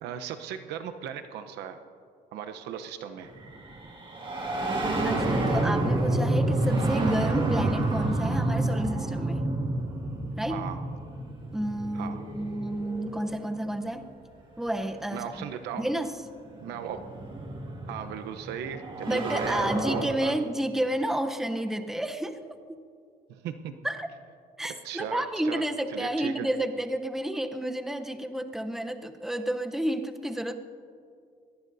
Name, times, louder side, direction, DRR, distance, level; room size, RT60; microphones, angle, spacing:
voice 1, 0.0-1.8 2.3-3.3 10.5-10.8 11.9-12.2 15.1-15.9 16.6-17.0 17.9-20.4 23.3-23.7 24.8-25.6 25.9-26.5, right 9 dB, 85° right, 8 dB, 0.9 m, -37 dB
sound 1, 3.3-13.9 15.2-15.3 16.3-20.0, right 2 dB, 30° right, 2.2 m, -29 dB
voice 2, 5.0-9.5 10.4-10.6 11.5-14.1 14.6-15.3 15.8-16.1 19.1-22.4 23.8-24.1 24.6-30.5, right 1 dB, ahead, 6 dB, 0.8 m, -31 dB
23.0 x 18.5 x 2.7 m, 2.3 s
cardioid pair, 110°, 17 cm